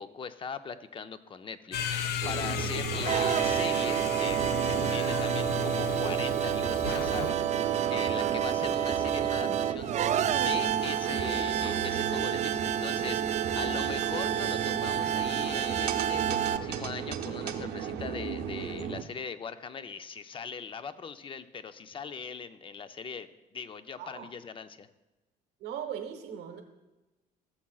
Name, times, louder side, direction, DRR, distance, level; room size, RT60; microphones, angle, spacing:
voice 1, 0.0-9.9 10.3-24.9, left 6 dB, 30° left, 11 dB, 0.5 m, -40 dB
sound 1, 1.7-7.3, left 8 dB, 75° left, 0.6 m, -35 dB
sound 2, 2.2-19.0, right 8 dB, 70° right, 0.8 m, -36 dB
sound 3, 2.9-16.6, right 9 dB, 45° right, 0.4 m, -29 dB
voice 2, 25.6-26.6, right 9 dB, 90° right, 5 dB, 1.1 m, -39 dB
15.5 x 7.3 x 2.4 m, 1.1 s
cardioid pair, 110°, 17 cm